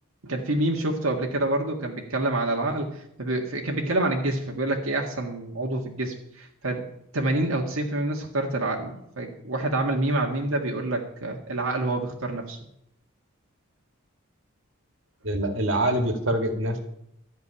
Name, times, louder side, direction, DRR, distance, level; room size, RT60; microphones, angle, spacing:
voice 1, 0.2-6.9 7.1-12.6, right 2 dB, 85° right, 1 dB, 1.8 m, -27 dB
voice 2, 15.2-16.8, right 1 dB, 65° right, 5 dB, 2.1 m, -25 dB
13.5 x 6.5 x 9.9 m, 0.78 s
head